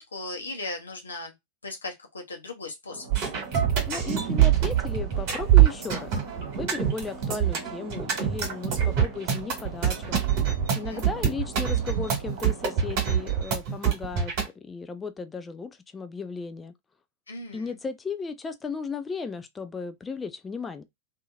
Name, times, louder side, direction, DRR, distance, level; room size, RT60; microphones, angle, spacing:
voice 1, 0.1-1.3 1.6-3.0 10.7-11.0 17.3-17.7, left 2 dB, 75° left, 0.8 m, -37 dB
sound 1, 2.9-13.4, right 2 dB, 65° right, 0.9 m, -43 dB
sound 2, 3.1-14.5, right 10 dB, 45° right, 1.5 m, -24 dB
voice 2, 3.9-6.2 6.6-10.2 10.7-16.7 17.5-20.8, left 4 dB, 15° left, 0.4 m, -35 dB
2.7 x 2.7 x 2.3 m
figure-of-eight pair, 90°, 0 cm